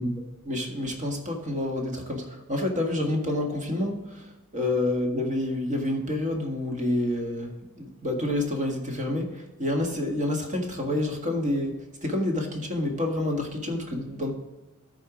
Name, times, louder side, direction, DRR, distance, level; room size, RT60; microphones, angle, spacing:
voice 1, 0.0-11.7 12.0-14.3, left 1 dB, 35° right, 1 dB, 1.8 m, -28 dB
13.5 x 4.6 x 5.0 m, 1.1 s
head